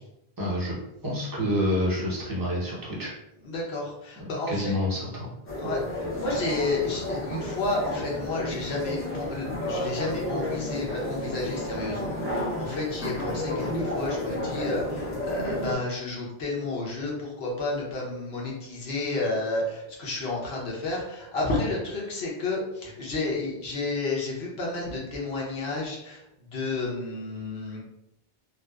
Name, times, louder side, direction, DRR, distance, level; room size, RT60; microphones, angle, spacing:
voice 1, 0.4-0.7 1.0-3.1 4.5-5.3, left 1 dB, 25° right, -6 dB, 0.7 m, -28 dB
voice 2, 3.4-4.7 5.6-26.2 26.5-27.8, left 2 dB, 80° left, -3 dB, 1.0 m, -31 dB
sound 1, 5.5-15.7, left 1 dB, 20° left, 0.4 m, -32 dB
2.8 x 2.1 x 2.3 m, 0.85 s
omnidirectional pair, 1.0 m